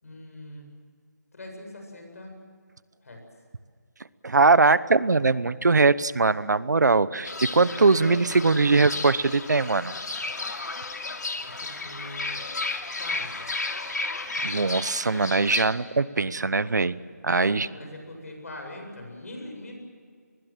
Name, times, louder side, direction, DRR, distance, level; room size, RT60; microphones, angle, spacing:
voice 1, 0.0-0.7 1.3-2.3 3.0-3.2 11.4-12.4 13.0-13.5 17.2-19.7, left 1 dB, 60° left, 3 dB, 7.8 m, -42 dB
voice 2, 4.2-9.9 14.4-16.9 17.2-17.7, right 3 dB, 90° right, 17 dB, 1.0 m, -21 dB
Fowl / Bird, 7.2-15.7, left 3 dB, 80° left, 2.8 m, -33 dB
25.5 x 20.5 x 7.6 m, 2.1 s
hypercardioid pair, 175°, 9 cm